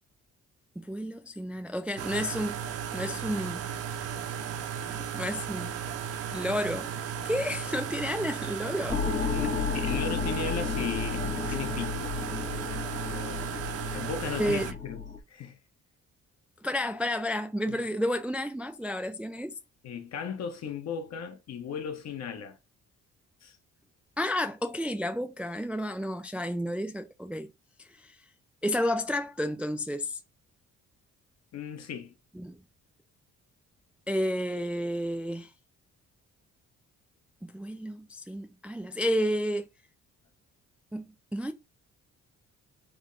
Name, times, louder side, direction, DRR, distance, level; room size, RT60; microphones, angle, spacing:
voice 1, 0.8-2.6 2.9-3.7 4.9-5.7 6.3-6.9 7.2-9.1 14.4-14.7 16.6-19.6 24.2-27.5 27.8-28.2 28.6-30.2 32.3-32.6 34.1-35.5 37.4-39.7 40.9-41.0 41.3-41.5, equal, 5° right, 0.3 m, -31 dB
sound 1, 2.0-14.7, right 8 dB, 55° right, 0.6 m, -35 dB
sound 2, 8.9-15.2, left 6 dB, 25° left, 0.7 m, -33 dB
voice 2, 9.3-12.1 13.1-13.5 13.9-15.0 15.3-15.6 17.7-17.8 19.8-22.6 23.4-23.6 31.5-32.1, left 7 dB, 60° left, 0.9 m, -36 dB
3.4 x 2.2 x 3.8 m
cardioid pair, 90°, 30 cm